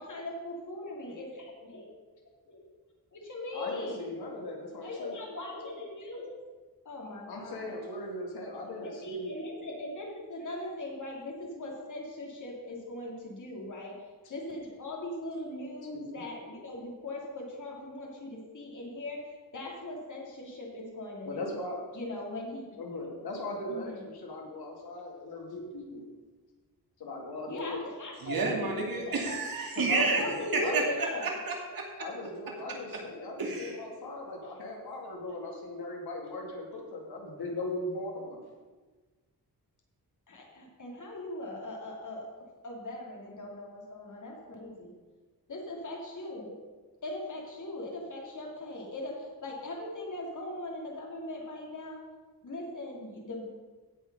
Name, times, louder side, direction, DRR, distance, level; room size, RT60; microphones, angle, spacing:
voice 1, 0.0-2.0 2.5-2.7 3.1-4.1 4.8-6.5 6.8-7.8 8.8-21.5 21.9-23.1 23.7-24.1 24.7-24.8 27.5-29.2 29.9-31.3 34.4-34.5 40.3-42.3 42.6-44.9 45.5-46.6 47.0-52.0 52.4-53.5, left 1 dB, 55° left, -1 dB, 2.9 m, -40 dB
voice 2, 3.5-5.2 7.3-9.3 15.9-16.2 21.3-21.8 22.8-26.1 27.0-27.8 29.8-30.8 32.0-38.4, left 2 dB, 85° left, 0 dB, 2.6 m, -38 dB
voice 3, 28.2-30.2 30.5-30.8 31.2-32.0 33.4-33.8, right 3 dB, 70° right, 0 dB, 2.6 m, -30 dB
16.0 x 5.4 x 5.5 m, 1.3 s
wide cardioid pair, 120°, 36 cm